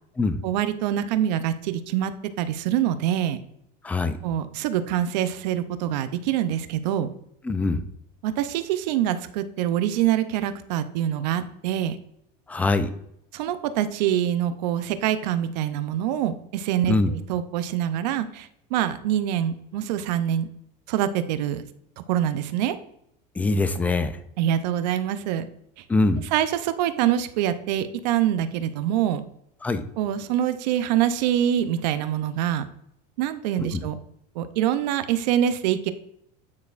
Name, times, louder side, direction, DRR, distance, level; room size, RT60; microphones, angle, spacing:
voice 1, 0.4-2.1 2.4-3.4 4.2-7.1 8.2-12.0 13.3-20.5 20.9-21.6 22.1-22.8 24.4-25.4 26.3-29.2 30.0-32.6 33.2-34.0 34.4-35.9, right 11 dB, 80° right, 11 dB, 0.6 m, -25 dB
voice 2, 3.8-4.2 7.4-7.8 12.5-12.9 16.9-17.1 23.4-24.1 25.9-26.2 29.6-29.8 33.6-33.8, left 3 dB, 5° left, 10 dB, 0.3 m, -23 dB
9.5 x 4.1 x 2.5 m, 0.75 s
supercardioid pair, 145°, 21 cm